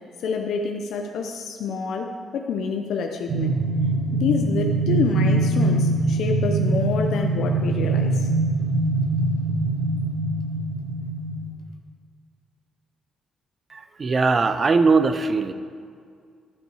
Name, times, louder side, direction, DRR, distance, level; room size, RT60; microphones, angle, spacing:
voice 1, 0.2-3.6 4.1-8.3, left 5 dB, 75° left, 4 dB, 0.6 m, -27 dB
sound 1, 3.3-11.5, right 2 dB, 60° right, 1.2 m, -23 dB
voice 2, 13.7-15.5, right 4 dB, 35° right, 10 dB, 0.6 m, -20 dB
12.0 x 5.9 x 4.8 m, 2.1 s
cardioid pair, 90°, 0 cm